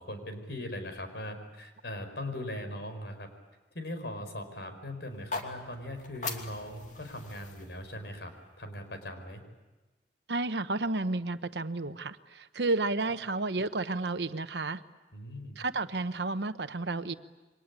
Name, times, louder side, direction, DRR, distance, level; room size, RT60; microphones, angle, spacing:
voice 1, 0.0-3.3 3.7-8.3 8.6-9.4 15.1-15.6, left 1 dB, 70° left, 7 dB, 5.1 m, -40 dB
sound 1, 5.1-9.2, left 3 dB, 45° left, 2.8 m, -42 dB
voice 2, 10.3-14.8 15.6-17.1, right 3 dB, 75° right, 11 dB, 1.0 m, -31 dB
28.5 x 24.0 x 8.5 m, 1.2 s
head